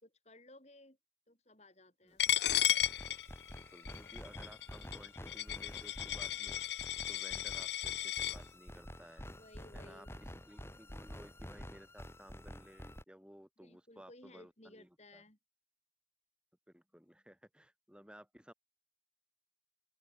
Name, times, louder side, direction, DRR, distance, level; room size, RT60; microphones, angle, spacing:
voice 1, 0.0-1.0 1.3-2.4 9.3-10.1 13.6-15.4, left 1 dB, 35° left, 5.0 m, -58 dB
Coin (dropping), 2.2-8.4, left 12 dB, 65° left, 0.6 m, -34 dB
sound 1, 2.2-13.0, left 1 dB, 15° left, 3.4 m, -49 dB
voice 2, 3.5-9.3 9.7-15.2 16.7-18.5, equal, 5° right, 3.3 m, -57 dB
open air
head